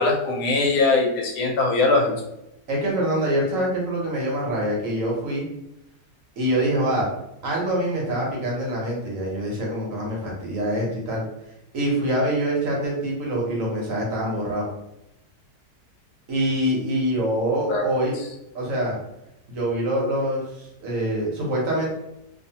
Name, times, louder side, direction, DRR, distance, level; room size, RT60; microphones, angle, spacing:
voice 1, 0.0-2.1 17.7-17.8, left 3 dB, 75° left, 0 dB, 1.1 m, -21 dB
voice 2, 2.7-5.4 6.4-7.1 7.4-11.2 11.7-14.7 16.3-18.1 18.5-19.0 19.5-21.9, right 1 dB, 60° right, -3 dB, 1.0 m, -25 dB
2.6 x 2.4 x 2.7 m, 0.87 s
omnidirectional pair, 1.8 m